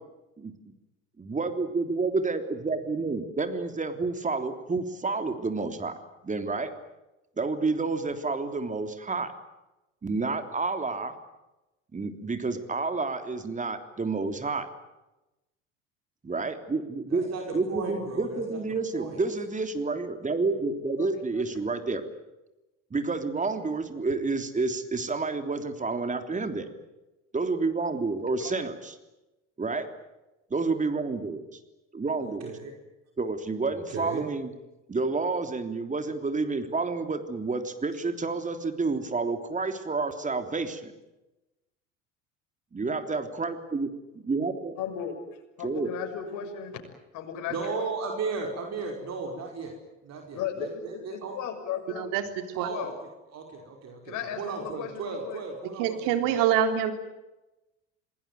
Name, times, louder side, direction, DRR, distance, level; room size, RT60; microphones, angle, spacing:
voice 1, 1.2-5.9 6.2-6.7 7.4-9.3 10.0-11.1 11.9-14.7 16.2-17.3 17.5-22.0 22.9-26.7 27.3-28.9 29.6-29.9 30.5-31.4 31.9-32.5 33.2-34.5 34.9-40.9 42.7-44.7 45.6-45.9, right 3 dB, 20° right, 8 dB, 3.5 m, -29 dB
voice 2, 17.1-18.6 18.9-19.1 32.2-32.7 33.7-34.2 47.5-49.7 50.1-51.4 52.5-52.9 53.3-56.0 56.3-56.4, right 4 dB, 45° right, 2 dB, 5.0 m, -35 dB
voice 3, 44.8-45.2 45.6-46.8 47.1-47.9 50.3-52.1 52.6-52.9 54.0-55.4 56.5-56.7, left 8 dB, 55° left, 4 dB, 6.5 m, -36 dB
voice 4, 55.8-56.9, right 9 dB, 60° right, 7 dB, 3.8 m, -25 dB
27.5 x 20.0 x 9.4 m, 1.0 s
hypercardioid pair, 70°, 37 cm